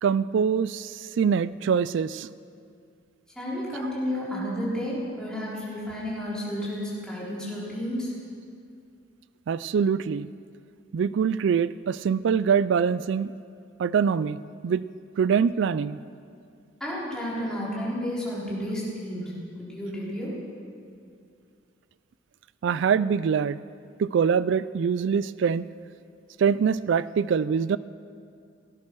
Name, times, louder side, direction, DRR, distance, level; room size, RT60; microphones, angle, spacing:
voice 1, 0.0-2.3 9.5-10.3 10.9-13.3 13.8-14.9 15.2-16.0 22.6-23.6 24.0-25.7 26.4-27.8, right 6 dB, 65° right, 17 dB, 0.3 m, -24 dB
voice 2, 3.4-8.1 16.8-19.3 19.6-20.4, equal, 5° left, -7 dB, 4.2 m, -31 dB
17.5 x 10.5 x 6.2 m, 2.3 s
head